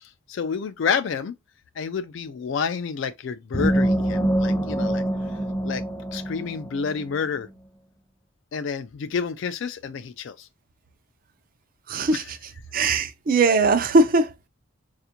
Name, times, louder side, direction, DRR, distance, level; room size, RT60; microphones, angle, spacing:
voice 1, 0.0-1.3 1.8-5.0 5.6-5.8 6.1-7.5 8.5-10.5 12.1-12.2, left 6 dB, 65° left, 0.3 m, -29 dB
sound 1, 3.5-7.1, right 1 dB, 10° left, 0.6 m, -25 dB
voice 2, 11.9-12.4 12.7-14.5, right 3 dB, 45° right, 0.4 m, -20 dB
4.2 x 2.4 x 2.8 m
head